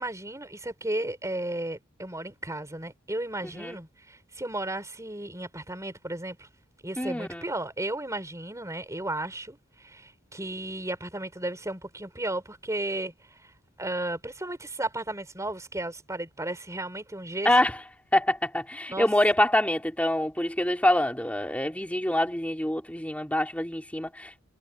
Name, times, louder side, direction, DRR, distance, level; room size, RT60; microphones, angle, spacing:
voice 1, 0.0-6.5 6.8-13.1 13.8-17.5 18.9-19.1, right 1 dB, 15° right, 5.5 m, -34 dB
voice 2, 3.4-3.8 7.0-7.4 17.4-17.8 18.1-24.4, left 1 dB, 5° left, 4.5 m, -25 dB
head